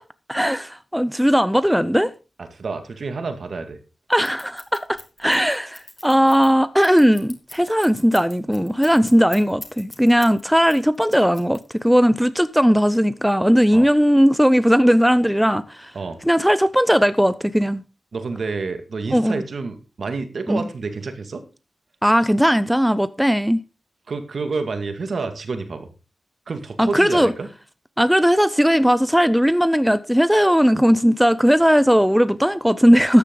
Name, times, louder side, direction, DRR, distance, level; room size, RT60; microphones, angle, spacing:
voice 1, 0.3-2.1 4.1-15.9 16.2-17.8 19.1-19.4 20.5-20.7 22.0-23.6 26.8-27.3 28.0-33.2, equal, ahead, 0.5 m, -17 dB
voice 2, 2.5-3.8 13.7-13.9 15.9-16.2 18.1-21.4 24.1-25.9 26.5-27.5, right 4 dB, 60° right, 2.1 m, -29 dB
Scissors, 4.2-10.4 10.7-12.0, left 1 dB, 20° left, 2.9 m, -41 dB
13.5 x 10.0 x 3.9 m
wide cardioid pair, 125°, 0 cm